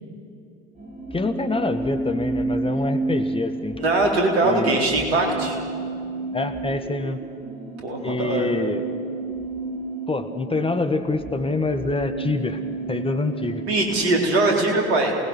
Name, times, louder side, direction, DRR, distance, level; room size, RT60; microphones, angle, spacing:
sound 1, 0.8-14.5, right 2 dB, 20° right, 6.4 m, -31 dB
voice 1, 1.1-3.8 4.4-4.8 6.3-7.2 8.0-8.8 10.1-12.6 12.9-13.7, left 3 dB, 15° left, 8 dB, 1.5 m, -26 dB
voice 2, 3.8-5.6 7.8-8.5 13.6-15.1, right 2 dB, 70° right, 1 dB, 3.8 m, -21 dB
28.5 x 19.5 x 6.2 m, 2.5 s
figure-of-eight pair, 60°, 32 cm